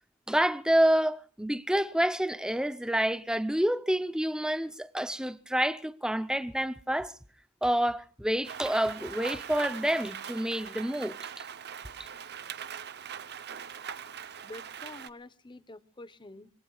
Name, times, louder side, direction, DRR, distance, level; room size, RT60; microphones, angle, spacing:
voice 1, 0.3-7.1 7.6-11.2, right 1 dB, 5° right, 0.7 m, -28 dB
Rain, 8.4-15.1, right 8 dB, 50° right, 0.8 m, -41 dB
voice 2, 14.4-16.5, left 2 dB, 20° left, 0.9 m, -47 dB
26.5 x 22.0 x 2.4 m
head